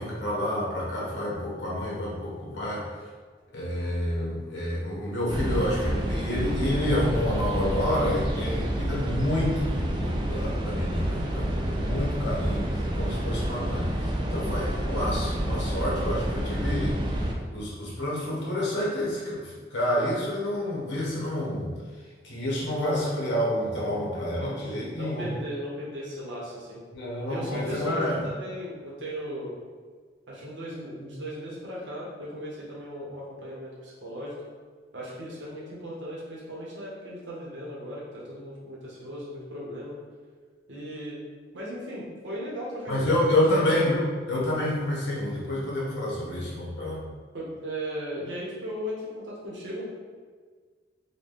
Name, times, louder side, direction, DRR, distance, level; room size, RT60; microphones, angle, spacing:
voice 1, 0.0-2.9 3.5-13.9 14.3-17.0 17.5-21.7 22.2-25.3 26.9-28.2 42.9-47.0, left 1 dB, 75° left, -5 dB, 1.1 m, -28 dB
sound 1, 5.3-17.3, right 1 dB, 25° right, 0.3 m, -29 dB
voice 2, 24.9-26.8 27.3-29.5 30.3-34.3 34.9-39.9 40.7-41.2 41.5-43.8 46.1-46.5 47.3-50.0, equal, 85° right, -6 dB, 1.0 m, -37 dB
4.1 x 2.3 x 3.3 m, 1.5 s
head